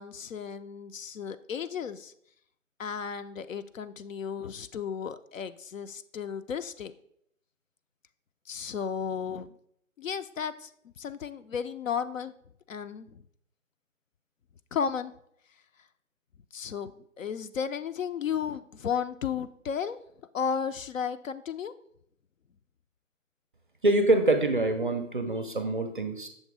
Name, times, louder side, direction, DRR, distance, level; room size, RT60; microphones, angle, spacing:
voice 1, 0.0-2.1 2.8-6.9 8.5-9.5 10.0-10.7 11.0-12.3 12.7-13.2 14.7-15.1 16.5-20.0 20.3-21.7, left 7 dB, 75° left, 11 dB, 0.5 m, -34 dB
voice 2, 23.8-26.3, right 2 dB, 40° right, 8 dB, 0.5 m, -25 dB
6.4 x 3.0 x 4.8 m, 0.70 s
figure-of-eight pair, 155°, 40 cm